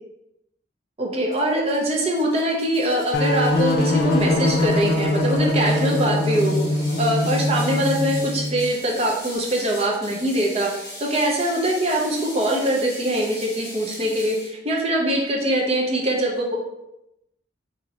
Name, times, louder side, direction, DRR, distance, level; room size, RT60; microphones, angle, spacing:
voice 1, 1.0-6.6 7.0-10.7 11.0-16.6, right 1 dB, 30° right, -2 dB, 0.7 m, -23 dB
Ratchet pawl, 1.3-14.5, left 1 dB, 15° left, 0.9 m, -40 dB
sound 1, 3.1-8.6, left 1 dB, 50° left, 0.4 m, -22 dB
4.4 x 2.7 x 2.7 m, 0.88 s
head